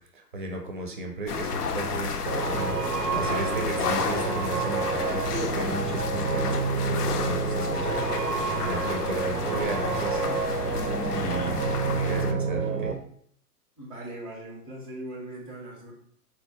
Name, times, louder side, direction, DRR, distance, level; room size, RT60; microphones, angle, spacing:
voice 1, 0.0-2.2 2.5-2.7 3.1-6.6 6.8-8.3 8.6-10.4 11.1-12.9, right 2 dB, 35° right, 2 dB, 0.5 m, -35 dB
sound 1, 1.3-12.3, left 6 dB, 75° left, 0.5 m, -31 dB
sound 2, 2.3-12.9, right 5 dB, 85° right, 0.6 m, -29 dB
voice 2, 13.8-15.9, right 1 dB, 25° left, -4 dB, 0.3 m, -39 dB
3.9 x 2.3 x 3.0 m, 0.63 s
figure-of-eight pair, 115°, 48 cm